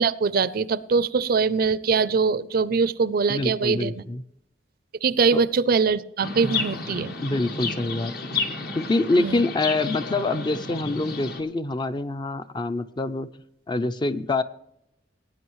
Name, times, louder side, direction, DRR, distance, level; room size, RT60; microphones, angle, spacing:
voice 1, 0.0-4.0 5.0-7.1 9.2-9.4, right 5 dB, 55° right, 18 dB, 0.4 m, -22 dB
voice 2, 3.3-4.2 5.3-5.4 7.2-8.1 8.7-13.3 13.7-14.4, left 2 dB, 25° left, 12 dB, 0.4 m, -25 dB
Chirp tweet, 6.2-11.4, left 3 dB, 55° left, 1.2 m, -31 dB
18.0 x 9.3 x 3.1 m, 0.80 s
head